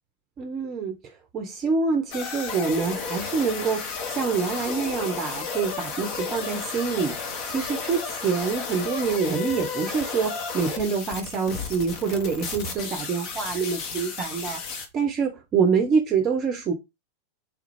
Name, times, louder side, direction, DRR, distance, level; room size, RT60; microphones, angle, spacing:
voice 1, 0.4-0.9 1.3-14.6 14.9-16.7, right 5 dB, 30° right, 0.6 m, -26 dB
sound 1, 2.1-14.9, left 5 dB, 45° left, 0.8 m, -33 dB
3.5 x 2.4 x 3.0 m
figure-of-eight pair, 90°, 0 cm